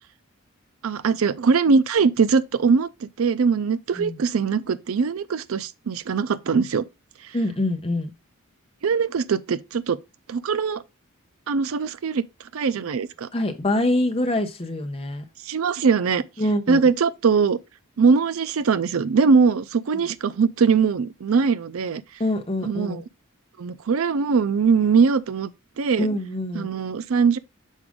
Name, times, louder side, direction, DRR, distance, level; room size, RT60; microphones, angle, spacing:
voice 1, 0.8-6.8 8.8-10.0 10.3-10.8 11.5-12.2 12.5-13.3 15.5-16.2 16.7-17.6 18.0-22.0 22.6-23.0 23.6-25.5 25.8-26.1 26.5-27.4, right 5 dB, 75° right, 0.4 m, -21 dB
voice 2, 7.3-8.1 13.3-15.2 16.4-16.9 19.9-20.0 22.2-23.0 26.0-26.7, left 1 dB, 25° left, 0.9 m, -25 dB
6.4 x 4.9 x 3.6 m
head